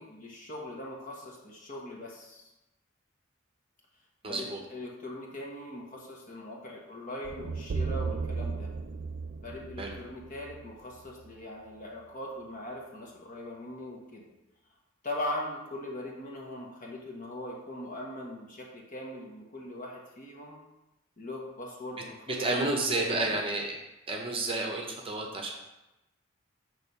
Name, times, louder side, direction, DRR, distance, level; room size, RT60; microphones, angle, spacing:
voice 1, 0.0-2.5 4.2-8.7 9.4-14.3 15.0-20.6 21.2-23.3, left 1 dB, 40° left, -2 dB, 1.2 m, -40 dB
voice 2, 4.2-4.6 9.8-9.9 22.3-23.8 24.1-25.5, right 2 dB, 25° right, 1 dB, 0.8 m, -30 dB
sound 1, 7.2-11.4, right 4 dB, 55° right, 0.4 m, -35 dB
6.2 x 3.2 x 5.4 m, 0.98 s
head